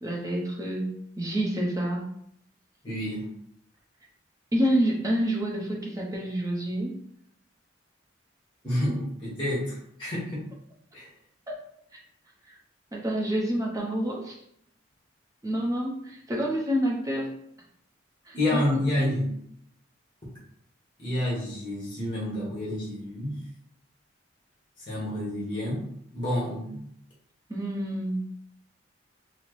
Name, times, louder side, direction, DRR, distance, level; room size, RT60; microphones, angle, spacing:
voice 1, 0.0-2.1 4.5-6.9 10.0-10.1 11.5-11.6 12.5-12.6 12.9-14.4 15.4-17.3 18.3-19.2 27.5-28.2, right 1 dB, 15° right, -2 dB, 0.6 m, -28 dB
voice 2, 2.8-3.2 8.6-10.4 10.9-11.1 18.3-19.3 21.0-23.3 24.9-25.8 26.1-26.9, left 1 dB, 25° left, -6 dB, 1.2 m, -29 dB
4.3 x 2.0 x 3.0 m, 0.72 s
head